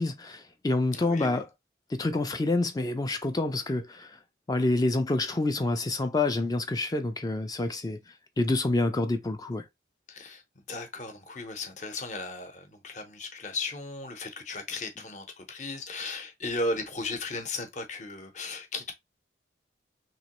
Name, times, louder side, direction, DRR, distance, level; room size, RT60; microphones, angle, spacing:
voice 1, 0.0-1.5 1.9-4.2 4.5-9.7, left 2 dB, 20° left, 0.3 m, -28 dB
voice 2, 0.9-1.4 10.1-10.4 10.7-18.9, left 2 dB, 40° left, 0.7 m, -36 dB
3.0 x 2.9 x 2.9 m
head